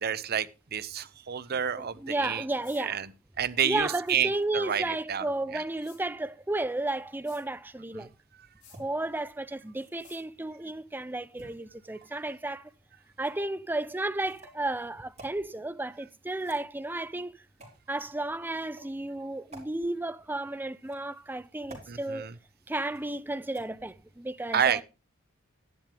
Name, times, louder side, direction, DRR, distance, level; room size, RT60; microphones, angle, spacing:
voice 1, 0.0-2.4 2.8-3.1 3.4-5.3 5.5-5.6 7.9-8.1 21.9-22.3 24.5-24.8, right 8 dB, 50° right, 0.7 m, -29 dB
voice 2, 1.8-3.0 3.6-8.1 8.8-12.7 13.2-17.3 17.9-22.3 22.7-24.8, right 2 dB, 10° right, 0.5 m, -33 dB
sound 1, 2.6-2.8 4.0-4.2 5.8-6.0 7.2-7.4 8.6-8.8 10.0-10.2, left 5 dB, 60° left, 6.2 m, -54 dB
Tin can - small - handle - tap - finge - metallic, 8.7-8.8 9.7-10.3 11.4-12.3 13.2-13.4 14.2-14.6 15.2-15.4 16.3-16.9 17.6-17.8 18.6-18.9 19.5-19.7 20.7-21.2 21.7-21.9 22.9-23.2 23.5-23.6, right 2 dB, 35° right, 4.2 m, -51 dB
12.0 x 10.5 x 3.4 m
head